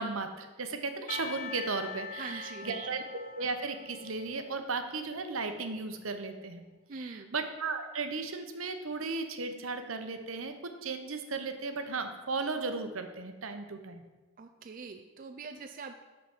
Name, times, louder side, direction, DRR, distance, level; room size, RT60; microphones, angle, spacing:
voice 1, 0.0-3.0 3.3-6.6 6.9-14.0, right 4 dB, 80° right, 7 dB, 0.9 m, -35 dB
Percussion, 1.1-5.9, left 6 dB, 40° left, 0.8 m, -44 dB
voice 2, 2.2-2.8 6.9-7.3 14.4-15.9, right 4 dB, 40° right, 6 dB, 0.4 m, -43 dB
6.2 x 5.9 x 7.1 m, 1.2 s
head